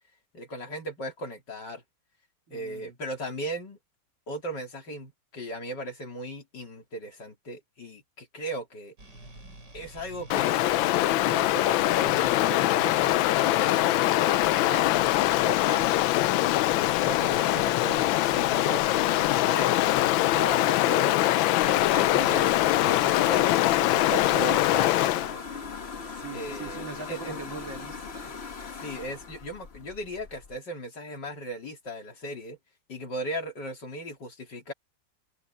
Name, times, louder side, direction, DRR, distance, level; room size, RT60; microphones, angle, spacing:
voice 1, 0.3-1.8 2.5-3.8 4.3-8.9 9.7-14.0 14.2-14.9 15.4-16.0 16.7-19.8 20.7-21.3 21.6-25.4 26.3-27.4 28.8-32.6 32.9-34.7, equal, 65° left, 4.0 m, -37 dB
voice 2, 2.5-3.0 20.3-21.3 26.0-28.3, right 5 dB, 80° right, 3.3 m, -42 dB
sound 1, 9.0-20.6, right 1 dB, 60° right, 7.3 m, -47 dB
Stream, 10.3-25.4, left 15 dB, 85° left, 1.4 m, -23 dB
sound 2, 21.6-30.6, left 5 dB, 40° left, 1.2 m, -39 dB
omnidirectional pair, 2.1 m